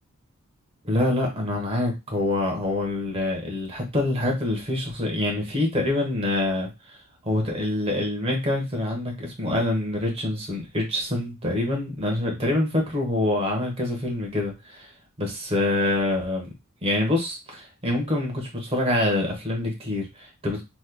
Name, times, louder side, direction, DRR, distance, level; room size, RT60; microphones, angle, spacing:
voice 1, 0.8-7.0 7.2-14.9 15.2-16.5 16.8-20.6, left 1 dB, 30° right, 0 dB, 1.0 m, -26 dB
3.3 x 3.1 x 2.2 m, 0.25 s
head